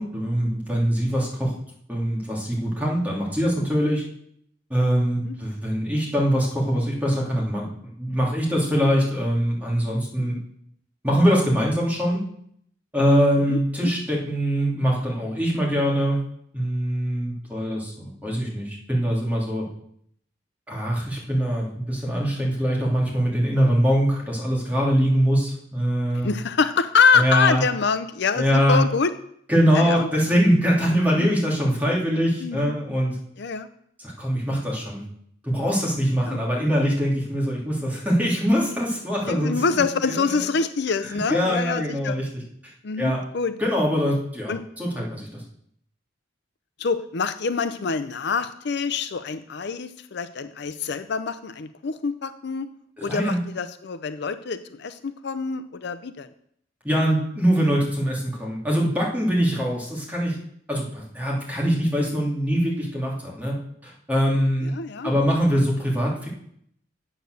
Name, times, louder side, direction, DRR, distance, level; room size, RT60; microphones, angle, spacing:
voice 1, 0.0-1.5 1.9-4.0 4.7-10.4 11.0-12.2 12.9-16.2 16.5-19.6 20.7-26.3 27.1-27.6 28.4-28.8 29.5-33.1 34.2-35.0 35.4-40.4 41.1-42.7 43.0-43.2 43.6-45.4 53.0-53.4 56.8-60.4 60.7-63.6 63.8-64.7 65.0-66.3, equal, 10° right, -4 dB, 2.9 m, -23 dB
voice 2, 13.5-13.9 26.1-29.1 29.7-30.1 31.2-31.3 32.4-32.7 33.4-33.7 36.3-36.6 39.2-42.2 42.8-43.5 44.5-44.6 46.8-52.7 53.0-56.3 64.7-65.1, left 5 dB, 60° left, 11 dB, 0.5 m, -25 dB
8.8 x 8.0 x 6.4 m, 0.69 s
head